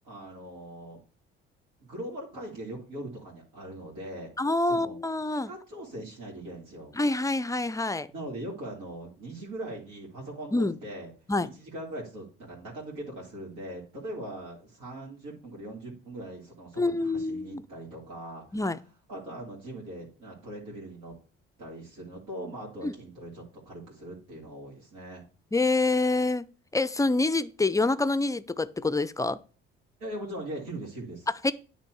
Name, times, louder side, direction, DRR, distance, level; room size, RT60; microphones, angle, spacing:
voice 1, 0.0-1.0 1.8-4.3 4.7-5.0 5.5-7.0 8.1-11.1 11.5-18.6 19.1-21.1 21.6-25.2 30.0-31.3, right 1 dB, 80° right, 2.4 m, -40 dB
voice 2, 4.4-5.5 7.0-8.1 10.5-10.7 11.3-11.5 16.8-17.6 18.5-18.8 22.8-22.9 25.5-26.5 26.7-29.4 31.4-31.5, left 2 dB, 10° left, 0.4 m, -26 dB
9.3 x 3.2 x 4.6 m
hypercardioid pair, 60°, 29 cm